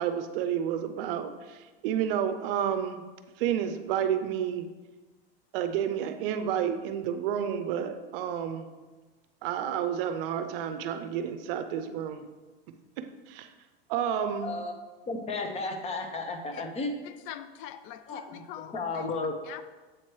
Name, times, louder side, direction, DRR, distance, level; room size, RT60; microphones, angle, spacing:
voice 1, 0.0-1.6 1.8-3.0 3.4-4.7 5.5-8.7 9.4-12.3 13.3-13.5 13.9-14.5, right 9 dB, 65° right, 9 dB, 0.6 m, -30 dB
voice 2, 14.4-14.7 15.1-16.9 18.1-18.2 18.7-19.3, left 3 dB, 20° left, 5 dB, 0.7 m, -33 dB
voice 3, 17.0-19.6, left 11 dB, 60° left, 12 dB, 0.4 m, -43 dB
7.7 x 3.0 x 4.5 m, 1.3 s
supercardioid pair, 125°, 30 cm